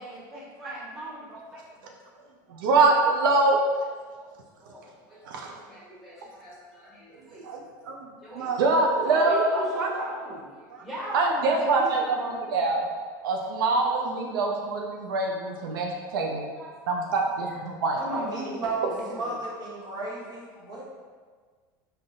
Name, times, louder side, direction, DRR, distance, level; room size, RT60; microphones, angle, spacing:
voice 1, 0.0-1.7 4.1-4.3 4.6-7.5 8.2-8.5 9.0-12.6 15.3-15.8 16.1-17.0 17.4-17.6 18.0-19.4 20.5-20.7, equal, 5° right, -8 dB, 1.2 m, -39 dB
voice 2, 2.5-3.6 5.2-5.5 7.4-7.6 7.9-8.0 8.3-9.9 11.1-12.2 12.5-12.9 13.2-16.4 16.9-18.0, right 3 dB, 85° right, 0 dB, 0.4 m, -24 dB
voice 3, 18.1-20.8, right 3 dB, 40° right, -5 dB, 0.9 m, -34 dB
3.8 x 2.1 x 2.5 m, 1.5 s
supercardioid pair, 100°, 11 cm